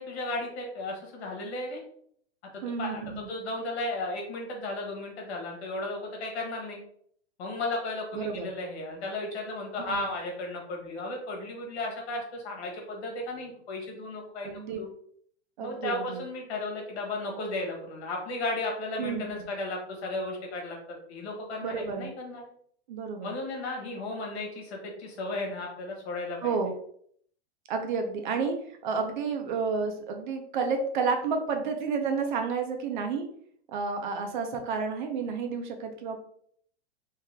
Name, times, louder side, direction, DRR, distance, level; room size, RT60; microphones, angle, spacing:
voice 1, 0.0-1.8 2.5-6.8 7.4-14.9 15.6-20.8 21.1-22.4 23.2-26.5, left 2 dB, 70° left, 1 dB, 1.4 m, -35 dB
voice 2, 2.6-3.3 8.1-8.5 9.8-10.1 14.4-14.8 15.6-16.2 19.0-19.3 21.6-22.1 22.9-23.3 26.4-26.7 27.7-28.6 28.8-33.2 33.7-36.2, right 5 dB, 45° right, 5 dB, 0.6 m, -30 dB
3.2 x 2.8 x 3.3 m, 0.64 s
supercardioid pair, 170°, 33 cm